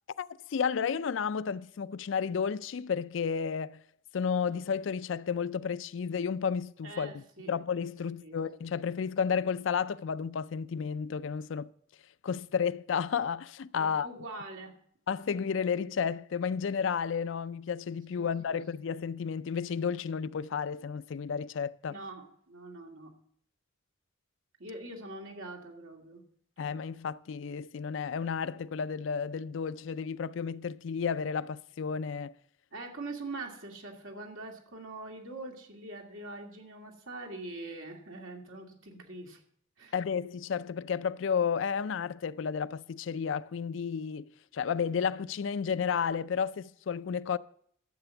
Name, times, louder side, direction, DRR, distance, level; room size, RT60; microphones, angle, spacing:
voice 1, 0.2-3.8 4.1-11.7 12.2-14.1 15.1-22.0 26.6-32.3 39.9-47.4, left 6 dB, 70° left, 0.4 m, -32 dB
voice 2, 6.8-7.5 8.2-8.7 13.8-14.7 18.2-18.6 21.9-23.1 24.6-26.2 32.7-39.4 39.8-39.9, right 2 dB, 85° right, 2.5 m, -43 dB
12.5 x 7.8 x 7.0 m
head